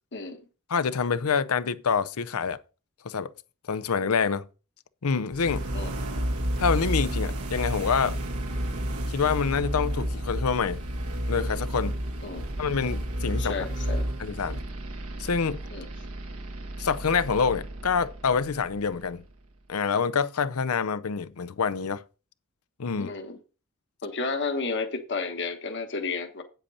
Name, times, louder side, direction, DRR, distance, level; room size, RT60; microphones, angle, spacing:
voice 1, 0.7-2.6 3.0-3.3 3.7-4.5 5.0-5.6 6.6-8.2 9.1-10.8 11.3-12.0 12.6-13.6 14.2-14.6 15.2-15.6 16.8-19.2 19.7-22.0 22.8-23.1, left 5 dB, 85° left, 0.6 m, -26 dB
sound 1, 5.3-19.2, right 1 dB, 90° right, 1.6 m, -31 dB
voice 2, 13.4-14.1 15.7-15.9 23.0-23.4 24.0-26.4, left 4 dB, 55° left, 1.3 m, -32 dB
8.7 x 8.0 x 4.1 m
head